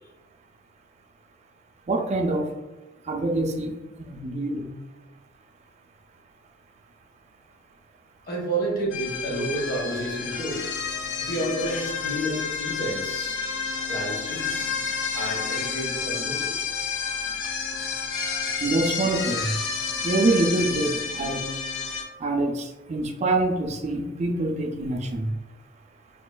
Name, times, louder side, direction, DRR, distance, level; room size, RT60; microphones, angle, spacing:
voice 1, 1.9-2.5 3.1-4.7 18.6-19.5 20.0-21.5 22.2-25.3, right 2 dB, 35° right, 4 dB, 0.4 m, -25 dB
voice 2, 8.3-10.8 11.2-13.4 13.9-14.9 15.1-16.5, right 1 dB, 50° left, -3 dB, 0.8 m, -30 dB
sound 1, 8.9-22.0, left 5 dB, 75° left, 0.5 m, -30 dB
5.0 x 2.3 x 2.2 m, 1.1 s
head